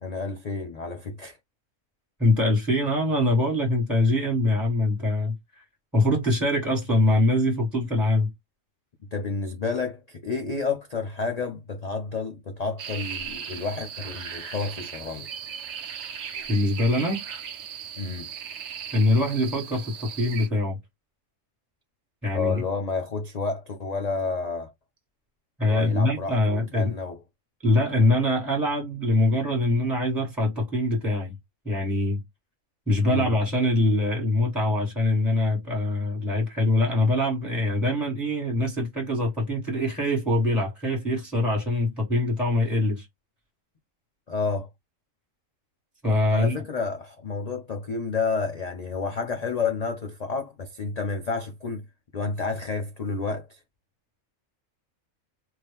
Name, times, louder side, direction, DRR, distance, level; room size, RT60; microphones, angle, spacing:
voice 1, 0.0-1.4 9.1-15.3 18.0-18.3 22.3-24.7 25.6-27.2 33.0-33.4 44.3-44.7 46.3-51.8 52.1-53.6, left 4 dB, 50° left, 0.5 m, -30 dB
voice 2, 2.2-5.6 5.9-8.3 16.5-17.2 18.9-20.8 22.2-22.6 25.6-26.9 27.6-31.3 31.6-32.2 32.9-43.1 46.0-46.6, left 1 dB, ahead, 1.8 m, -23 dB
sound 1, 12.8-20.5, right 7 dB, 60° right, 0.9 m, -37 dB
3.0 x 2.7 x 3.5 m
omnidirectional pair, 1.5 m